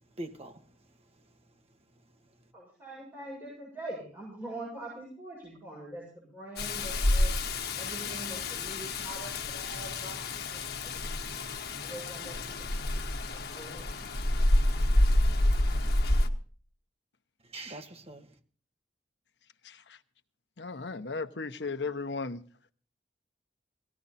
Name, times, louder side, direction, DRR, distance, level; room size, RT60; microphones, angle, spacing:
voice 1, 0.0-2.5 17.4-18.4, right 2 dB, 35° right, 1.5 m, -46 dB
voice 2, 2.5-7.3 7.8-11.0 11.8-14.1, right 1 dB, 15° right, 7.3 m, -44 dB
Rain, 6.6-16.3, left 1 dB, 65° left, 1.4 m, -28 dB
voice 3, 20.6-22.4, left 4 dB, 80° left, 1.0 m, -35 dB
18.5 x 15.0 x 4.2 m
head